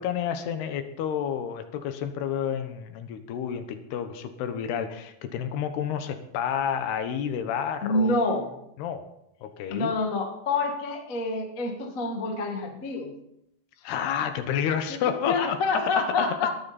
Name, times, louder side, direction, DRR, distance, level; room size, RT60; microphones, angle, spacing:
voice 1, 0.0-8.3 8.8-9.1 9.4-9.9 13.8-16.5, left 8 dB, 75° left, 8 dB, 3.1 m, -30 dB
voice 2, 7.8-8.5 9.7-13.1 14.9-15.0 15.3-16.5, left 3 dB, 40° left, 2 dB, 1.1 m, -27 dB
20.0 x 13.5 x 4.3 m, 0.81 s
omnidirectional pair, 4.8 m